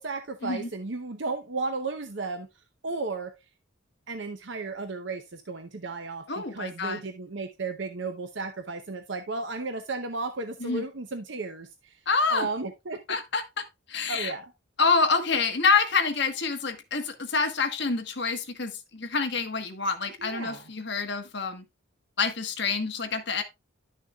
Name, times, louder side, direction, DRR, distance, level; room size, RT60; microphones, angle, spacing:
voice 1, 0.0-2.5 2.8-3.3 4.1-12.0 12.3-13.0 14.1-14.5 20.2-20.7, right 3 dB, 60° right, 0.8 m, -34 dB
voice 2, 6.3-7.0 10.6-10.8 12.1-12.5 13.1-14.3 14.8-21.6 22.2-23.4, left 4 dB, 55° left, 1.2 m, -27 dB
11.0 x 6.5 x 2.3 m
head